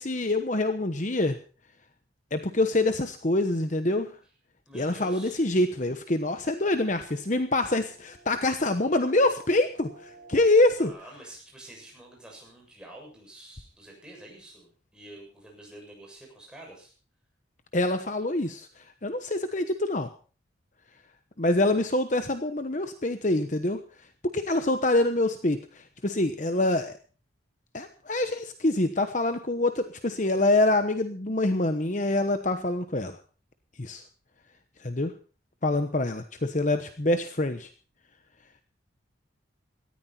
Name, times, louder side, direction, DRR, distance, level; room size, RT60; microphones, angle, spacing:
voice 1, 0.0-1.4 2.3-4.2 4.7-10.9 17.7-20.1 21.4-23.8 24.2-27.0 27.7-33.2 33.8-34.0 34.8-35.1 35.6-37.7, left 2 dB, 40° left, 8 dB, 1.1 m, -25 dB
voice 2, 4.7-5.4 10.8-16.9, right 1 dB, 5° right, -1 dB, 7.1 m, -48 dB
sound 1, 5.7-10.9, right 2 dB, 70° left, 7.3 m, -54 dB
18.5 x 14.0 x 4.4 m, 0.38 s
head